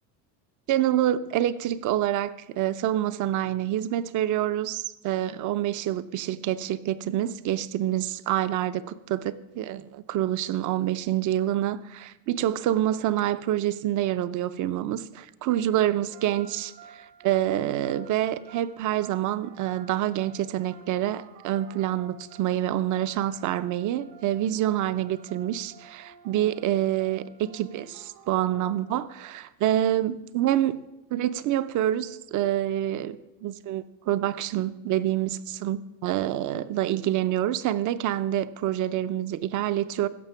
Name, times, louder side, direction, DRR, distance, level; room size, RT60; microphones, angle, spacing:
voice 1, 0.7-30.8 31.1-33.2 33.4-40.1, right 12 dB, 45° right, 14 dB, 0.7 m, -27 dB
sound 1, 15.5-29.4, right 6 dB, 70° right, 1.8 m, -51 dB
16.0 x 6.9 x 5.6 m, 1.0 s
cardioid pair, 130°, 41 cm